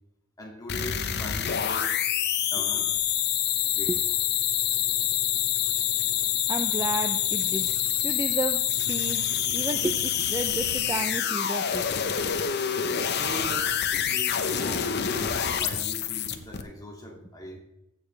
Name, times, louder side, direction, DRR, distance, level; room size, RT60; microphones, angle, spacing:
voice 1, 0.4-1.9 2.5-2.9 3.7-4.0 13.2-17.6, equal, 15° left, 0 dB, 2.2 m, -40 dB
sound 1, 0.7-16.6, left 9 dB, 50° left, 0.8 m, -27 dB
voice 2, 6.5-7.7 8.0-12.2 15.6-15.7, right 2 dB, 15° right, 7 dB, 0.4 m, -32 dB
15.0 x 6.9 x 3.2 m, 0.89 s
head